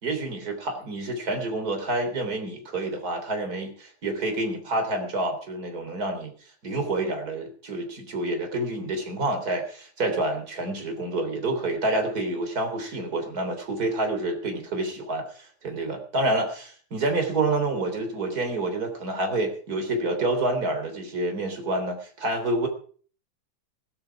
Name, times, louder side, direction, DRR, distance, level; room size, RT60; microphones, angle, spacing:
voice 1, 0.0-6.3 6.6-22.7, right 2 dB, 30° right, 4 dB, 3.8 m, -28 dB
16.5 x 13.5 x 5.0 m, 0.44 s
omnidirectional pair, 3.6 m